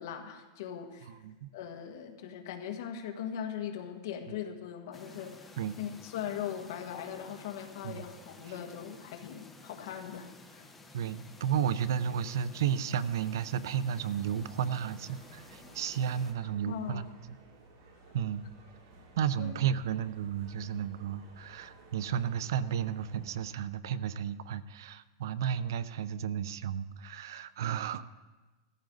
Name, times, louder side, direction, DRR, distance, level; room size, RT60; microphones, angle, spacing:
voice 1, 0.0-1.1 1.5-10.7 16.4-17.1 19.4-19.7, left 9 dB, 65° left, 4 dB, 1.7 m, -40 dB
voice 2, 1.1-1.5 5.6-5.8 7.8-8.1 10.9-17.1 18.1-18.5 19.2-28.0, right 8 dB, 75° right, 15 dB, 0.6 m, -33 dB
sound 1, 4.9-16.3, left 2 dB, 10° left, 1.1 m, -53 dB
sound 2, 13.9-23.5, right 2 dB, 55° right, 3.0 m, -57 dB
15.5 x 14.0 x 4.0 m, 1.2 s
supercardioid pair, 165°, 2 cm